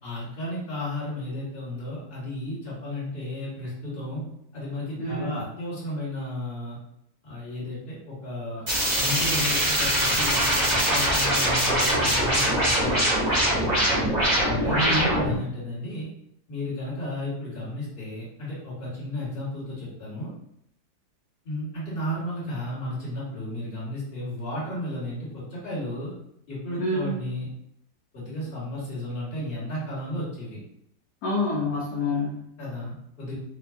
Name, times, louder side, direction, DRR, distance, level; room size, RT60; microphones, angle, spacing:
voice 1, 0.0-4.2 4.5-6.8 7.2-8.6 9.0-13.9 14.6-16.1 16.5-20.3 21.4-26.1 26.5-27.5 28.1-30.6 32.6-33.4, left 1 dB, 35° left, -9 dB, 1.5 m, -33 dB
voice 2, 5.0-5.3 14.6-15.2 26.8-27.2 31.2-32.5, left 1 dB, 70° left, -3 dB, 1.0 m, -27 dB
sound 1, 8.7-15.4, equal, 30° right, 0.9 m, -23 dB
3.0 x 2.2 x 2.4 m, 0.74 s
omnidirectional pair, 2.0 m